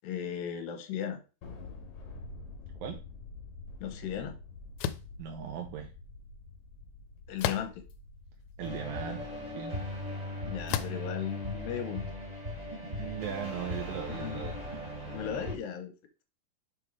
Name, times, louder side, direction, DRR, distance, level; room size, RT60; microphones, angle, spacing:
voice 1, 0.0-1.2 3.8-4.4 7.3-7.8 10.4-12.0 14.1-14.6 15.0-15.9, left 9 dB, 70° left, 6 dB, 2.5 m, -36 dB
Thunder, 1.4-12.1, left 3 dB, 55° left, 2.4 m, -49 dB
sound 1, 4.8-5.1 7.4-7.9 8.7-8.8 10.7-11.1, left 10 dB, 90° left, 2.5 m, -32 dB
voice 2, 5.2-5.9 8.6-9.2 9.5-9.8 12.8-14.5, right 8 dB, 75° right, 2 dB, 2.2 m, -38 dB
sound 2, 8.6-15.5, left 1 dB, 15° right, 1.3 m, -38 dB
6.8 x 3.6 x 4.7 m, 0.32 s
omnidirectional pair, 4.5 m